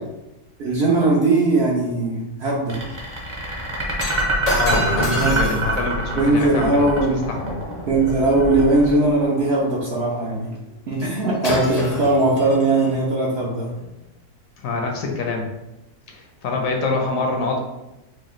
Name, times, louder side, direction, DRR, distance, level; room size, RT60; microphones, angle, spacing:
voice 1, 0.6-2.8 5.0-5.4 6.2-7.2 7.9-10.5 10.9-13.7, right 2 dB, 60° right, -4 dB, 0.7 m, -19 dB
sound 1, 2.7-9.8, right 2 dB, 25° right, 0.7 m, -26 dB
Shatter, 4.0-8.4 11.0-11.2 11.4-12.9 13.7-13.8, equal, 45° left, 0.5 m, -29 dB
voice 2, 4.6-6.9 7.3-7.6 10.7-10.8 14.6-15.5 16.1-17.6, left 3 dB, 70° left, 2 dB, 0.9 m, -25 dB
4.7 x 2.3 x 3.0 m, 0.95 s
omnidirectional pair, 1.6 m